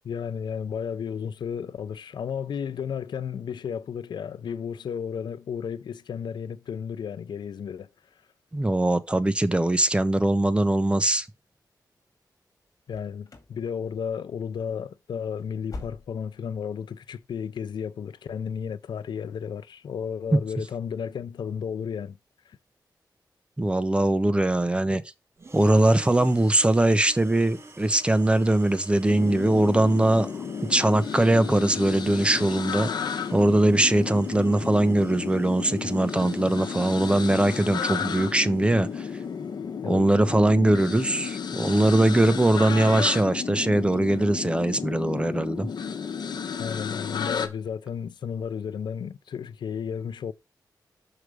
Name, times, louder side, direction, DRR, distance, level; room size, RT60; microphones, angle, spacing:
voice 1, 0.0-7.9 12.9-22.2 22.5-22.6 39.8-40.0 46.6-50.3, left 7 dB, 85° left, 0.5 m, -33 dB
voice 2, 8.5-11.3 23.6-25.0 25.5-30.3 30.7-32.9 33.3-39.1 39.9-45.7, right 1 dB, 15° right, 0.7 m, -21 dB
sound 1, 12.9-13.6 13.9-14.3 14.6-14.8 15.2-16.5 16.8-16.9 17.4-17.5, left 3 dB, 50° left, 2.1 m, -43 dB
sound 2, 25.4-39.3, right 2 dB, 35° right, 0.9 m, -48 dB
sound 3, 29.1-47.5, left 6 dB, 70° left, 1.0 m, -32 dB
6.5 x 4.8 x 4.7 m
wide cardioid pair, 105°, 7 cm